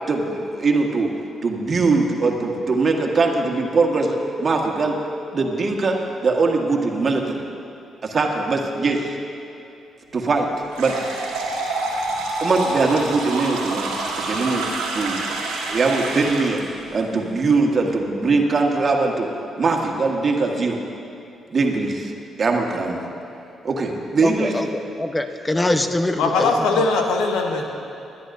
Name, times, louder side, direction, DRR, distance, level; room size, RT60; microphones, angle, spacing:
voice 1, 0.1-1.1 1.4-5.0 5.3-7.4 8.0-9.2 10.1-10.5 10.8-11.0 12.4-14.6 14.9-16.6 16.9-19.3 19.6-20.8 21.5-22.1 22.4-23.1 23.6-24.5, right 3 dB, 45° right, 1 dB, 1.7 m, -21 dB
sound 1, 10.7-16.6, right 2 dB, 80° right, 1.8 m, -27 dB
voice 2, 24.2-26.9, left 1 dB, 20° left, 7 dB, 0.9 m, -24 dB
voice 3, 26.2-27.7, left 3 dB, 75° left, 3 dB, 1.2 m, -20 dB
20.5 x 11.5 x 2.7 m, 2.7 s
hypercardioid pair, 45°, 0 cm